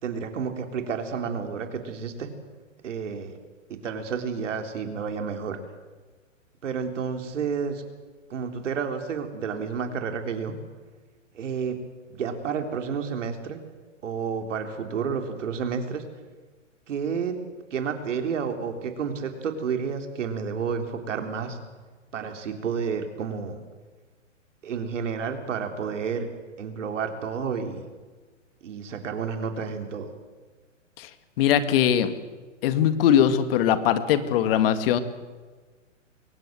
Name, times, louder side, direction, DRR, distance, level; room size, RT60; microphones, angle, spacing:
voice 1, 0.0-2.3 2.8-3.3 3.7-5.6 6.6-7.8 8.3-10.5 11.3-11.8 12.1-13.6 14.0-16.0 16.9-17.4 17.7-21.6 22.1-23.6 24.6-26.3 26.6-27.8 28.6-30.1, right 6 dB, 65° right, 5 dB, 3.7 m, -30 dB
voice 2, 31.4-32.1 32.6-35.0, left 9 dB, 45° left, 11 dB, 2.0 m, -21 dB
23.0 x 19.0 x 7.8 m, 1.4 s
hypercardioid pair, 125°, 39 cm